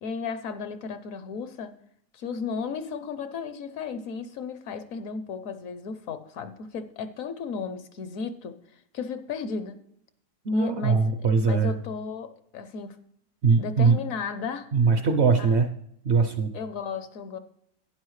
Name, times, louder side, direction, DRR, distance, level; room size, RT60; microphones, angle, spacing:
voice 1, 0.0-1.8 2.1-9.8 10.5-11.1 11.4-13.0 13.6-14.7 15.4-15.6 16.5-17.4, left 5 dB, 65° left, 11 dB, 1.0 m, -34 dB
voice 2, 10.4-11.7 13.4-14.0 14.7-15.7 16.0-16.5, right 5 dB, 55° right, 8 dB, 0.8 m, -21 dB
11.0 x 9.9 x 3.1 m, 0.72 s
omnidirectional pair, 1.7 m